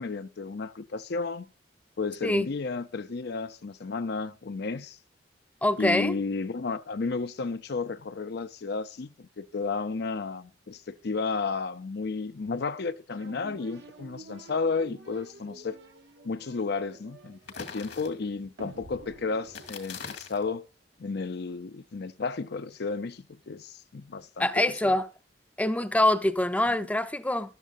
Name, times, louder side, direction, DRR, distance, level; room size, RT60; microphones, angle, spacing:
voice 1, 0.0-1.5 2.0-5.0 5.8-15.8 16.2-20.6 21.0-25.0, left 4 dB, 65° left, 0.6 m, -33 dB
voice 2, 5.6-6.1 24.4-25.1 25.6-27.5, left 1 dB, 10° left, 0.6 m, -25 dB
sound 1, 13.1-20.6, right 2 dB, 65° right, 1.1 m, -50 dB
sound 2, 17.4-18.5 19.5-20.5, left 5 dB, 80° left, 2.3 m, -41 dB
13.5 x 12.0 x 2.5 m
head